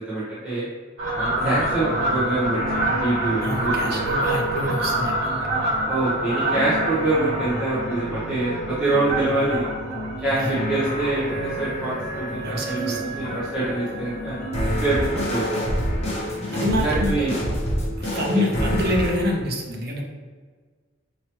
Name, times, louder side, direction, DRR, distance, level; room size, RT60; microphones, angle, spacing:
voice 1, 0.1-0.7 1.1-4.1 5.8-9.7 10.2-14.4 14.8-15.6 16.8-17.3 18.1-18.4, right 2 dB, 5° right, -12 dB, 1.0 m, -25 dB
Fowl, 1.0-11.8 12.2-12.5 13.2-13.8 14.0-14.1 14.4-14.5 14.8-14.9 15.2-15.4 16.4-16.5 17.0-17.1, right 1 dB, 90° right, 1.4 m, -27 dB
sound 1, 1.3-19.1, equal, 35° left, 1.2 m, -29 dB
voice 2, 1.4-1.7 3.4-5.5 10.4-10.6 12.4-13.2 16.5-17.3 18.0-20.0, left 1 dB, 55° right, 0 dB, 0.8 m, -27 dB
5.7 x 3.0 x 3.0 m, 1.5 s
head